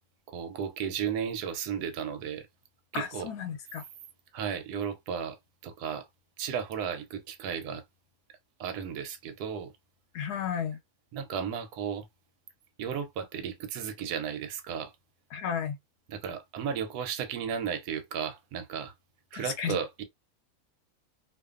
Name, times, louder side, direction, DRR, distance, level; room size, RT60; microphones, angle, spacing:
voice 1, 0.3-2.5 2.9-3.3 4.3-6.1 6.4-7.8 8.6-9.7 11.1-12.1 12.8-14.9 16.1-18.9 19.3-20.0, right 7 dB, 85° right, 1.1 m, -34 dB
voice 2, 2.9-3.8 10.1-10.8 15.3-15.8 19.3-19.8, left 8 dB, 85° left, 1.2 m, -33 dB
2.5 x 2.4 x 2.4 m
omnidirectional pair, 1.6 m